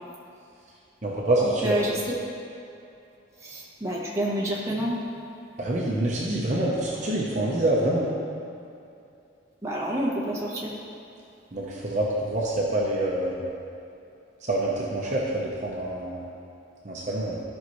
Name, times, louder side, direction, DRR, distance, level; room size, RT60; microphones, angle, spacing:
voice 1, 1.0-1.8 5.6-8.1 11.5-13.4 14.4-16.3 16.8-17.4, right 1 dB, 40° right, -4 dB, 0.9 m, -26 dB
voice 2, 1.6-2.0 3.4-5.0 9.6-10.7, right 1 dB, 15° right, -4 dB, 1.1 m, -28 dB
13.0 x 5.5 x 3.1 m, 2.6 s
head